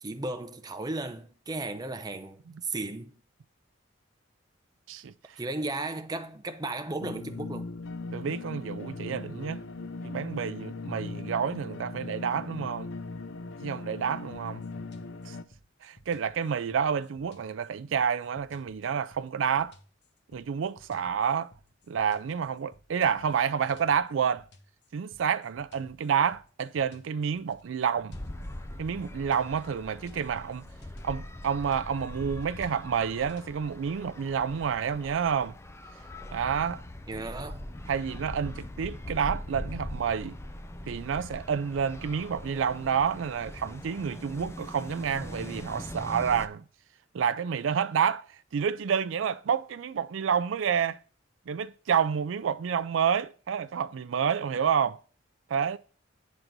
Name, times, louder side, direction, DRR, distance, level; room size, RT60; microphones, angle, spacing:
voice 1, 0.0-3.2 5.4-7.7 37.1-37.7, right 2 dB, 20° right, 0.7 m, -35 dB
voice 2, 4.9-5.4 8.1-9.6 10.0-12.9 13.6-14.6 15.2-15.4 15.8-19.7 20.3-21.5 21.9-24.5 24.9-28.2 28.8-30.7 31.0-35.6 36.3-36.8 37.9-40.4 40.9-46.6 47.1-51.0 51.5-55.0 55.5-55.8, right 7 dB, 80° right, 0.4 m, -29 dB
sound 1, 7.0-15.4, left 3 dB, 80° left, 0.6 m, -39 dB
sound 2, 14.3-33.5, left 1 dB, 60° left, 1.1 m, -58 dB
sound 3, 28.1-46.5, left 1 dB, 15° left, 0.5 m, -41 dB
9.4 x 3.9 x 5.9 m
head